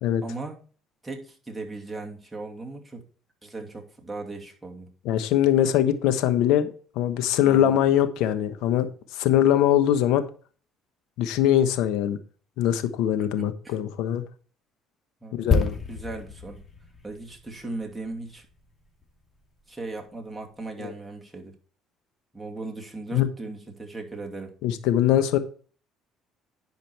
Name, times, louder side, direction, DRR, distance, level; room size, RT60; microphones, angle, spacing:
voice 1, 0.2-0.6 1.0-3.0 3.4-4.9 7.4-7.8 13.6-13.8 15.2-15.5 15.9-16.6 17.0-18.5 19.7-21.5 22.3-24.5, right 3 dB, 10° right, 0 dB, 2.7 m, -37 dB
voice 2, 5.0-10.2 11.2-12.2 12.6-14.2 15.3-15.7 20.8-20.9 23.1-23.3 24.6-25.4, left 11 dB, 80° left, 10 dB, 1.1 m, -22 dB
sound 1, 15.5-19.2 19.4-19.6, left 4 dB, 25° left, 2.3 m, -29 dB
10.5 x 5.1 x 4.6 m, 0.41 s
supercardioid pair, 85°, 0 cm